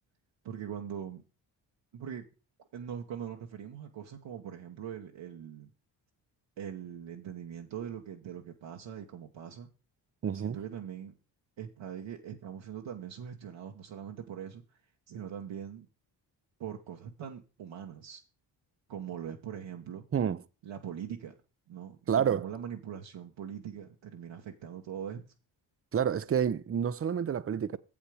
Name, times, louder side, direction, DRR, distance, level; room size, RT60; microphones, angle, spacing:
voice 1, 0.4-1.2 1.9-2.2 2.7-5.7 6.6-9.7 10.3-11.1 11.6-14.6 15.1-15.9 16.6-18.2 18.9-20.0 20.6-21.3 21.7-25.2, right 8 dB, 65° right, 1.1 m, -42 dB
voice 2, 10.2-10.6 20.1-20.4 22.1-22.5 25.9-27.8, right 8 dB, 30° right, 0.6 m, -29 dB
7.5 x 7.2 x 4.8 m
supercardioid pair, 60°, 48 cm